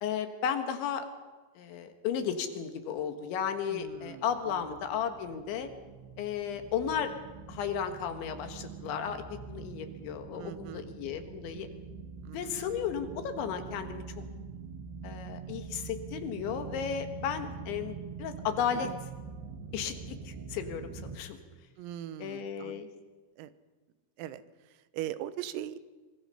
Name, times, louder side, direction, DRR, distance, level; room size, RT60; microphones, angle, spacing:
voice 1, 0.0-1.1 1.6-5.7 6.2-7.1 7.5-11.7 12.3-14.0 15.0-18.9 19.7-20.0 20.3-21.4 22.2-22.9, left 8 dB, 70° left, 7 dB, 3.5 m, -34 dB
sound 1, 3.5-21.2, right 6 dB, 65° right, 3.5 m, -44 dB
voice 2, 3.7-4.8 10.4-10.9 12.2-12.6 18.7-19.0 21.8-22.8 23.4-23.5 24.2-25.8, right 12 dB, 90° right, 13 dB, 3.8 m, -41 dB
24.5 x 24.5 x 5.6 m, 1.4 s
omnidirectional pair, 6.0 m